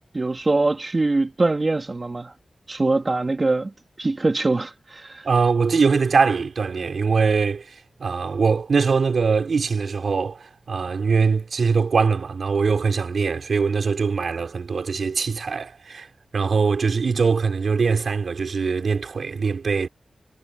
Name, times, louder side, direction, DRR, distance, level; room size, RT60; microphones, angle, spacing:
voice 1, 0.1-2.3 2.7-3.7 4.0-5.3, right 2 dB, 35° right, 2.8 m, -23 dB
voice 2, 5.2-7.7 8.0-16.1 16.3-19.9, right 5 dB, 70° right, 4.1 m, -22 dB
wide cardioid pair, 85°, 0 cm